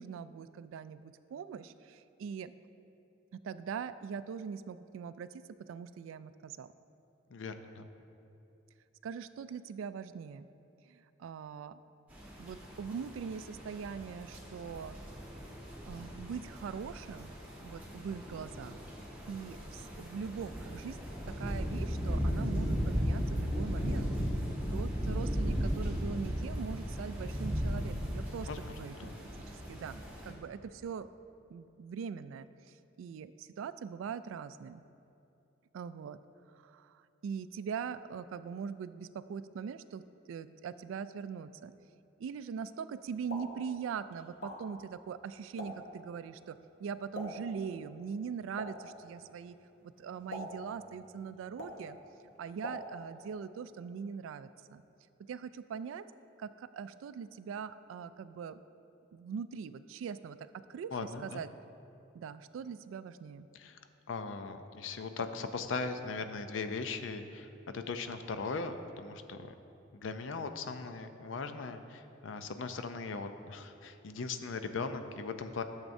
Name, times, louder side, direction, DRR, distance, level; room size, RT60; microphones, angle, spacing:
voice 1, 0.0-2.5 3.3-6.7 9.0-10.5 10.8-11.8 12.4-15.0 15.9-17.3 17.6-18.8 19.3-21.0 21.3-24.1 24.4-29.1 29.7-31.1 31.5-34.8 35.7-36.2 36.5-41.7 42.2-49.6 49.8-52.0 52.4-54.8 55.2-56.1 56.4-58.6 59.1-61.5 62.1-63.5, right 6 dB, 90° right, 14 dB, 0.3 m, -42 dB
voice 2, 7.3-7.9 28.5-29.2 60.9-61.4 63.5-63.8 64.1-67.5 67.7-69.5 69.9-75.6, left 4 dB, 75° left, 8 dB, 0.5 m, -39 dB
sound 1, 12.1-30.3, equal, 10° right, 1.5 m, -36 dB
Explosion, 43.0-53.3, left 1 dB, 60° left, 1.3 m, -48 dB
12.5 x 7.2 x 2.6 m, 2.7 s
head